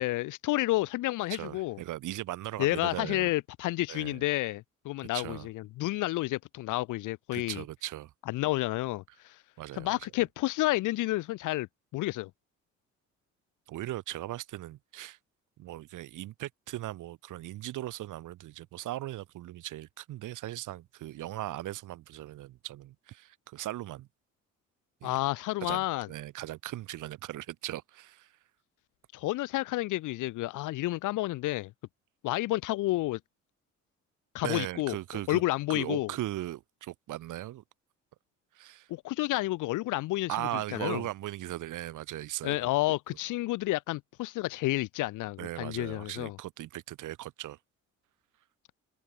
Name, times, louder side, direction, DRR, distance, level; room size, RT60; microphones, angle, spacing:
voice 1, 0.0-1.8 2.6-7.6 8.3-9.4 9.7-11.7 11.9-12.3 25.0-26.1 29.1-31.7 32.2-33.2 34.3-35.0 35.3-36.1 38.9-40.4 40.7-41.0 42.4-46.4, left 18 dB, 85° left, 0.7 m, -30 dB
voice 2, 1.3-3.3 3.9-4.2 5.1-5.5 7.3-8.1 9.6-10.0 13.7-15.2 15.6-24.1 25.0-25.2 25.6-28.3 34.4-35.4 35.7-37.6 38.5-38.9 40.3-42.7 45.4-47.6, right 15 dB, 85° right, 4.1 m, -38 dB
cardioid pair, 90°, 30 cm